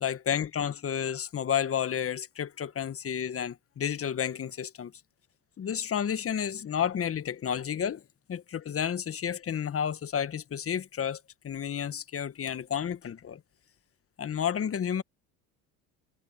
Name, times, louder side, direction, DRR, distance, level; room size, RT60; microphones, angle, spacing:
voice 1, 0.0-4.9 5.6-8.0 8.3-13.4 14.2-15.0, left 8 dB, 35° left, 1.5 m, -31 dB
hypercardioid pair, 80°, 41 cm